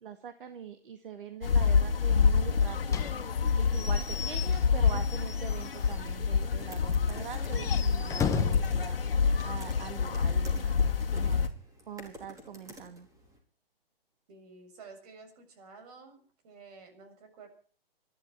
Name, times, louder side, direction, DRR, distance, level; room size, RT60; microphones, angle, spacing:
voice 1, 0.0-3.1 3.5-9.0 9.4-11.4 11.9-13.1, right 7 dB, 60° right, 8 dB, 2.1 m, -43 dB
sound 1, 1.4-11.5, left 5 dB, 70° left, 2.1 m, -27 dB
Slam / Squeak / Wood, 2.9-6.1 6.4-6.5 6.8-6.9 7.4-8.8, left 6 dB, 10° left, 1.4 m, -36 dB
sound 2, 5.5-13.4, right 1 dB, 10° right, 4.5 m, -52 dB
voice 2, 14.3-17.5, right 4 dB, 40° right, 7 dB, 7.4 m, -51 dB
26.0 x 12.0 x 4.6 m, 0.44 s
figure-of-eight pair, 135°, 30 cm